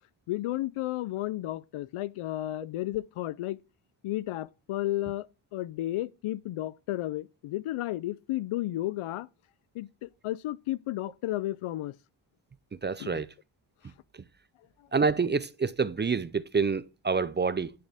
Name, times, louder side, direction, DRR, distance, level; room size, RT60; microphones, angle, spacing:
voice 1, 0.3-3.6 4.0-9.3 9.7-12.0 13.0-13.2, left 15 dB, 85° left, 0.6 m, -33 dB
voice 2, 12.8-13.3 14.9-17.7, right 5 dB, 25° right, 0.5 m, -27 dB
10.5 x 6.5 x 3.5 m
cardioid pair, 115°, 49 cm